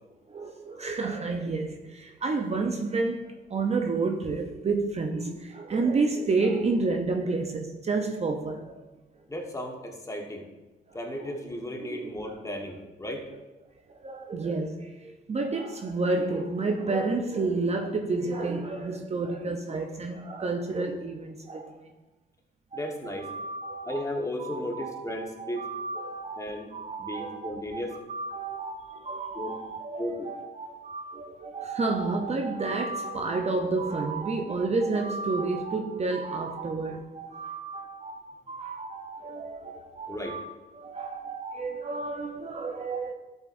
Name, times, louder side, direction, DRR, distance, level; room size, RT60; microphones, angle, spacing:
voice 1, 0.3-8.8 11.2-11.4 11.8-12.4 13.9-21.9 22.7-22.8 23.0-24.1 24.4-25.0 25.4-43.1, right 3 dB, 35° right, 0.7 m, -30 dB
voice 2, 9.3-10.4 10.9-13.2 22.7-23.3 23.8-25.7 26.4-26.7 27.0-28.0 29.3-29.5 30.0-30.3 40.1-40.4, left 1 dB, 15° left, 1.5 m, -35 dB
12.0 x 8.0 x 2.6 m
cardioid pair, 90°, 20 cm